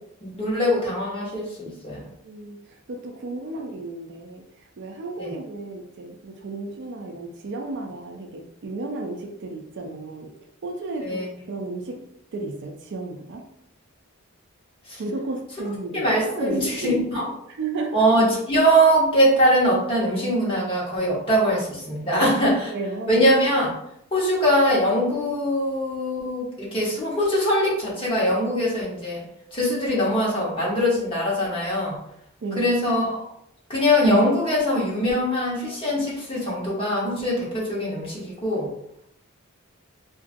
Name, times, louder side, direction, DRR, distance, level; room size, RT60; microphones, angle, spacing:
voice 1, 0.2-2.1 5.2-5.3 11.0-11.3 14.9-15.0 15.9-17.3 17.9-22.7 23.1-23.7 24.1-29.2 29.5-32.0 32.6-33.3 33.7-38.7, equal, 25° left, -6 dB, 1.0 m, -22 dB
voice 2, 2.2-4.4 4.8-10.3 10.6-11.2 11.5-12.0 12.3-13.4 15.0-17.0 17.6-18.0 22.1-22.3 22.7-23.3 32.4-32.7, right 2 dB, 55° right, 2 dB, 0.4 m, -33 dB
2.9 x 2.5 x 2.5 m, 0.75 s
head